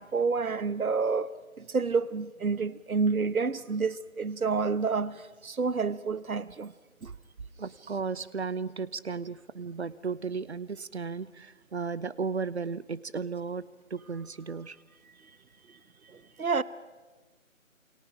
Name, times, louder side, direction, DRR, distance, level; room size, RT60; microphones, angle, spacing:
voice 1, 0.0-6.7 7.0-7.1 15.7-15.8 16.0-16.6, right 4 dB, 85° right, 1.2 m, -29 dB
voice 2, 7.6-14.8, right 5 dB, 50° right, 1.0 m, -35 dB
28.5 x 27.5 x 5.1 m
figure-of-eight pair, 165°, 42 cm